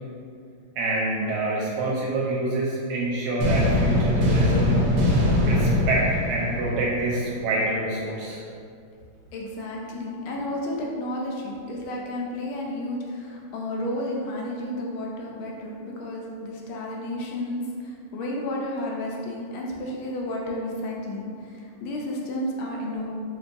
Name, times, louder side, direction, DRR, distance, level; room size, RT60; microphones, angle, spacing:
voice 1, 0.8-4.8 5.4-8.4, right 2 dB, 90° right, -5 dB, 1.5 m, -26 dB
sound 1, 3.4-7.4, left 1 dB, 70° right, 1.0 m, -22 dB
voice 2, 9.3-23.1, left 1 dB, 80° left, -2 dB, 1.4 m, -32 dB
4.6 x 2.5 x 2.5 m, 2.4 s
omnidirectional pair, 2.4 m